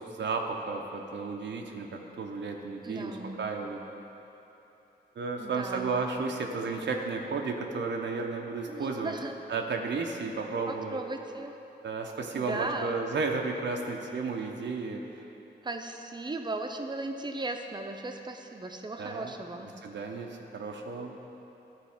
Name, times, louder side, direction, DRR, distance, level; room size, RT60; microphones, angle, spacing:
voice 1, 0.0-3.8 5.2-9.1 9.5-11.0 11.8-15.0 19.0-19.3 19.6-21.1, right 4 dB, 80° right, 2 dB, 0.6 m, -33 dB
voice 2, 2.8-3.4 5.4-5.9 8.7-9.4 10.7-11.5 12.3-12.9 15.6-19.7, right 2 dB, 25° right, 4 dB, 0.5 m, -37 dB
11.0 x 4.0 x 3.5 m, 3.0 s
cardioid pair, 55°, 18 cm